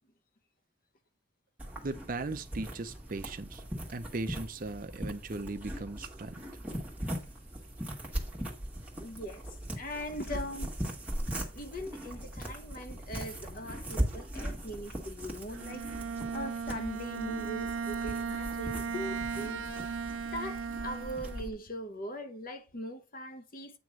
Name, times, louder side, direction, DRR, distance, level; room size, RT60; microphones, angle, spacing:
sound 1, 1.6-21.5, right 1 dB, 5° right, 1.7 m, -39 dB
voice 1, 1.8-3.6 3.9-6.4, right 2 dB, 45° right, 0.6 m, -38 dB
voice 2, 9.0-9.4 9.8-10.8 11.5-16.0 16.3-23.8, equal, 45° left, 0.8 m, -41 dB
Bowed string instrument, 15.5-21.6, right 5 dB, 80° right, 0.6 m, -37 dB
8.9 x 3.1 x 6.1 m
head